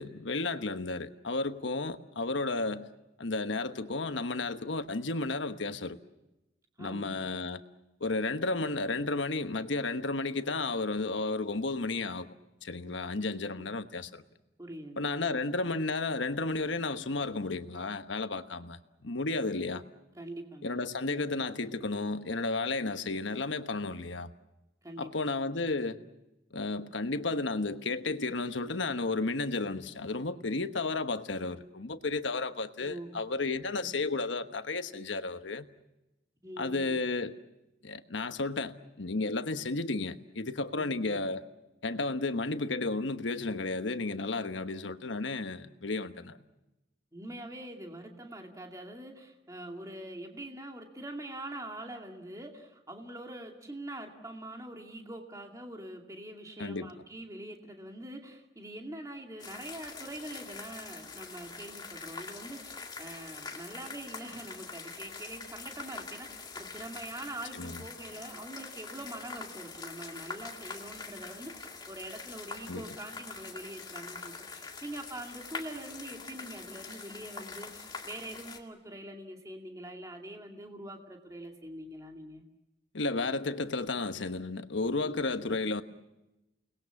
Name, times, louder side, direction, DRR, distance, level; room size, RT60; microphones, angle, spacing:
voice 1, 0.0-2.9 3.2-6.0 6.8-7.6 8.0-12.3 12.6-14.2 15.0-19.8 20.6-24.3 25.0-26.0 26.5-35.6 36.6-37.4 37.8-41.4 41.8-46.4 56.6-56.9 67.5-67.8 72.7-72.8 82.9-85.8, left 3 dB, 85° left, 1.2 m, -33 dB
voice 2, 6.8-7.3 13.6-13.7 14.6-15.4 20.2-21.3 24.8-25.4 32.8-33.2 33.6-33.9 36.4-37.0 40.8-41.0 47.1-82.4 85.4-85.6, right 1 dB, 20° right, 2.4 m, -44 dB
sound 1, 59.4-78.6, left 4 dB, 25° left, 2.1 m, -44 dB
30.0 x 20.0 x 7.2 m
head